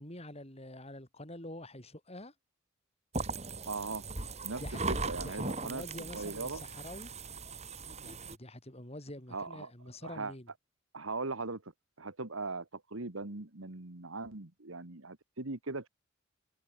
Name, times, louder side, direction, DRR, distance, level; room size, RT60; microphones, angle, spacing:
voice 1, 0.0-2.3 4.6-4.8 5.2-7.1 8.0-10.5, left 1 dB, 30° left, 7.1 m, -46 dB
sound 1, 3.1-8.4, right 3 dB, 35° right, 4.5 m, -38 dB
voice 2, 3.7-4.0 4.4-4.6 4.9-6.6 9.3-9.7 10.0-10.3 10.9-11.6 12.0-15.9, right 3 dB, 80° right, 1.9 m, -39 dB
head